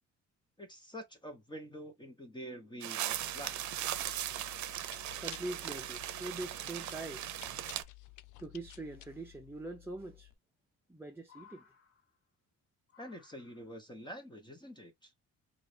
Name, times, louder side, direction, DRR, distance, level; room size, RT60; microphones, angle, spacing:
voice 1, 0.6-3.6 13.0-15.1, equal, 15° left, 1.2 m, -47 dB
sound 1, 2.8-7.8, right 13 dB, 70° right, 0.6 m, -38 dB
Chewing mastication, 3.1-10.3, left 16 dB, 80° left, 0.5 m, -54 dB
voice 2, 5.2-7.3 8.4-10.3 10.9-11.6, right 2 dB, 5° right, 0.7 m, -43 dB
sound 2, 7.4-7.5 9.1-9.2 10.4-10.9 11.2-12.4 12.9-13.9 14.9-15.0, left 6 dB, 50° left, 1.6 m, -62 dB
3.9 x 2.6 x 3.3 m
cardioid pair, 90°, 30 cm